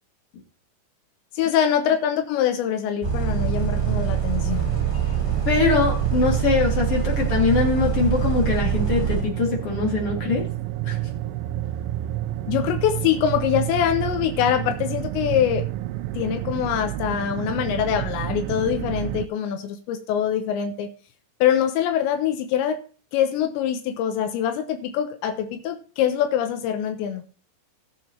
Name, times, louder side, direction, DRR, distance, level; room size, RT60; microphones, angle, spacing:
voice 1, 1.3-4.7 12.5-15.7 16.2-20.9 21.4-22.8 23.1-27.2, left 9 dB, 85° left, 6 dB, 3.2 m, -24 dB
Bus, 3.0-9.2, right 8 dB, 10° right, 1.6 m, -25 dB
sound 1, 3.3-19.3, right 14 dB, 90° right, 3.0 m, -30 dB
voice 2, 5.5-10.5 10.8-11.0, left 4 dB, 40° left, -1 dB, 2.3 m, -22 dB
19.0 x 7.2 x 2.9 m, 0.40 s
omnidirectional pair, 5.1 m